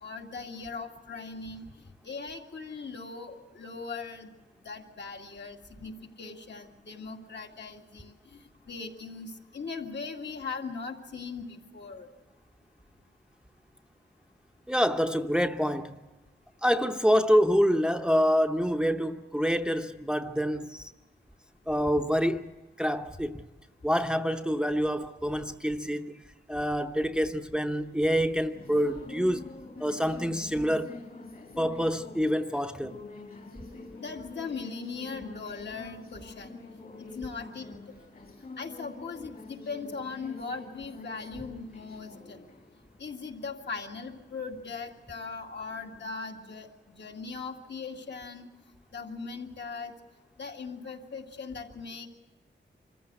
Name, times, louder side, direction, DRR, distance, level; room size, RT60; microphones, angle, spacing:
voice 1, 0.0-1.7 2.0-12.1 34.0-36.6 37.0-37.7 38.6-42.4 43.0-46.7 47.0-48.5 48.9-49.9 50.4-52.1, left 4 dB, 70° left, 2.2 m, -39 dB
voice 2, 14.7-16.0 16.6-20.9 21.7-22.5 22.8-23.4 23.8-26.2 26.5-29.5 29.8-30.9 31.6-33.0, equal, 5° right, 0.7 m, -26 dB
sound 1, 27.6-46.0, left 3 dB, 50° left, 2.1 m, -47 dB
25.5 x 14.5 x 8.1 m
wide cardioid pair, 130°, 19 cm